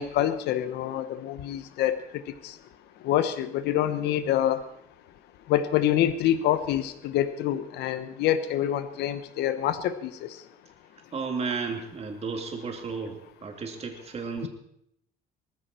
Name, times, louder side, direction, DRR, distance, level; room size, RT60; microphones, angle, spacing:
voice 1, 0.0-2.0 3.0-4.6 5.5-10.3, left 11 dB, 85° left, 11 dB, 1.2 m, -26 dB
voice 2, 11.1-14.5, right 5 dB, 40° right, 3 dB, 2.9 m, -33 dB
18.5 x 15.0 x 4.5 m, 0.75 s
cardioid pair, 110°, 17 cm